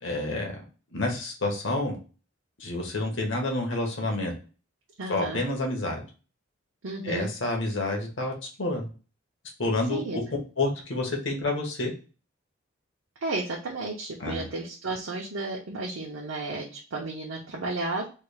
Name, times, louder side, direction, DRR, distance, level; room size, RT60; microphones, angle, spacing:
voice 1, 0.0-0.6 0.9-2.0 2.6-4.3 5.1-6.0 7.0-8.3 8.6-8.9 9.6-10.0 10.6-11.9 14.2-14.5, left 2 dB, 70° left, 1 dB, 1.1 m, -28 dB
voice 2, 5.0-5.4 6.8-7.3 9.9-10.2 13.2-18.1, right 2 dB, 90° right, -2 dB, 0.7 m, -33 dB
3.3 x 2.4 x 3.3 m, 0.35 s
head